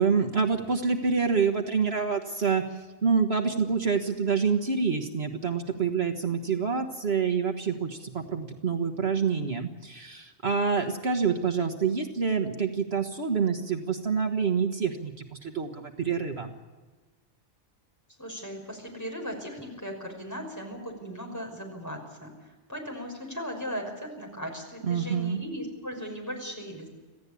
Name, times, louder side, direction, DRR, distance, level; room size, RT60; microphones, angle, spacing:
voice 1, 0.0-16.5 24.8-25.4, right 5 dB, 60° right, 5 dB, 1.7 m, -27 dB
voice 2, 18.2-26.9, equal, 15° left, 1 dB, 5.8 m, -38 dB
26.5 x 16.0 x 8.5 m, 1.3 s
omnidirectional pair, 1.2 m